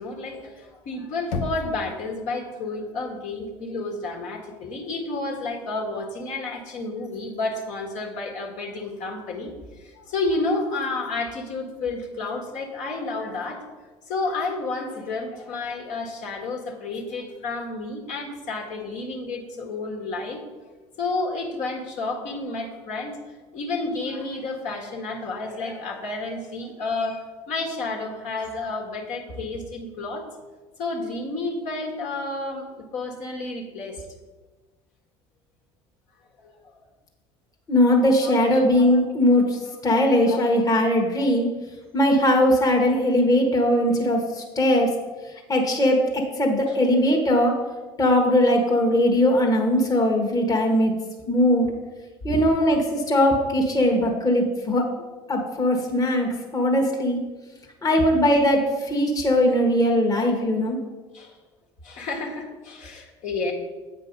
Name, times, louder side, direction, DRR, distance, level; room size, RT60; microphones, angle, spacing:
voice 1, 0.0-9.5 9.8-13.7 14.1-20.4 21.0-23.2 23.5-30.3 30.8-34.0 36.4-36.6 38.2-39.0 39.7-39.8 40.3-40.4 41.2-41.3 46.7-46.8 52.3-52.4 61.1-61.4 61.8-63.5, left 3 dB, 60° left, -1 dB, 1.6 m, -31 dB
Knock, 1.3-2.2, left 4 dB, 80° left, 0.9 m, -32 dB
voice 2, 37.7-41.5 41.9-44.9 45.5-47.6 48.0-50.9 51.3-51.7 52.2-54.9 55.3-57.2 57.8-60.8, left 1 dB, 25° left, 1 dB, 1.3 m, -20 dB
8.2 x 4.9 x 5.2 m, 1.3 s
hypercardioid pair, 80°, 14 cm